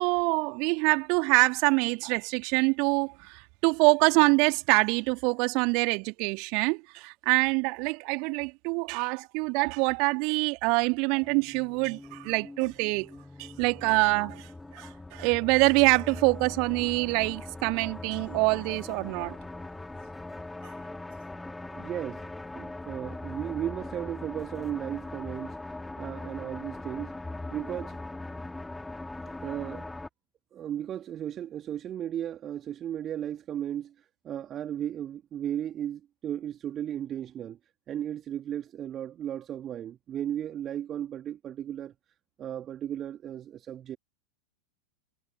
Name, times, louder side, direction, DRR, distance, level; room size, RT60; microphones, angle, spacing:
voice 1, 0.0-13.1 13.4-14.5 14.7-19.4, right 32 dB, 45° right, 2.4 m, -25 dB
sound 1, 11.1-30.1, left 2 dB, 5° left, 3.1 m, -41 dB
voice 2, 21.7-25.6 26.0-27.2 27.5-28.0 29.3-29.9 30.5-37.6 37.9-41.9 42.4-44.0, right 10 dB, 30° right, 2.6 m, -35 dB
figure-of-eight pair, 90°, 0 cm